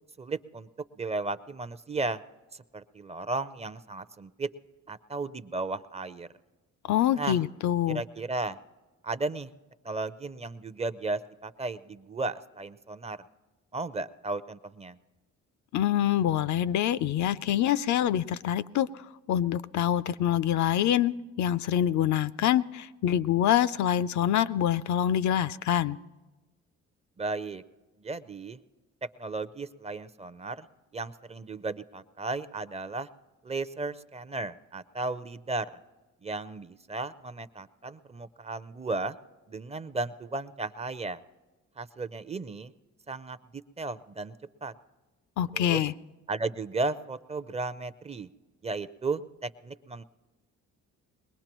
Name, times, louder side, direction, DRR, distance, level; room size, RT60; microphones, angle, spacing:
voice 1, 0.2-0.7 1.0-2.2 2.5-4.5 4.9-6.3 7.2-7.4 7.9-8.6 9.0-9.5 9.8-13.2 13.7-15.0 27.2-27.6 28.0-28.6 29.2-30.7 30.9-33.1 33.4-35.7 36.2-39.1 39.5-41.2 41.8-42.7 43.1-43.4 43.8-44.4 44.6-44.7 45.5-45.8 46.3-48.3 48.6-50.0, right 3 dB, 20° right, 13 dB, 0.5 m, -34 dB
voice 2, 6.9-8.0 15.7-19.0 19.3-26.0 45.4-45.9, left 11 dB, 70° left, 15 dB, 0.5 m, -26 dB
22.0 x 19.0 x 3.0 m, 1.2 s
cardioid pair, 90°, 30 cm